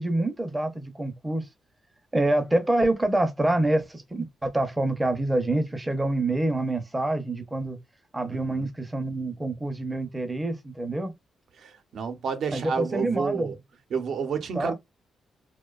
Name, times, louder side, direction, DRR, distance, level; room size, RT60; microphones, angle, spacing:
voice 1, 0.0-1.5 2.1-7.8 8.1-11.1 12.5-13.6 14.5-14.7, right 2 dB, 10° right, 0.5 m, -26 dB
voice 2, 11.6-13.5 13.9-14.7, right 6 dB, 65° right, 0.6 m, -30 dB
2.5 x 2.1 x 2.3 m
cardioid pair, 145°, 0 cm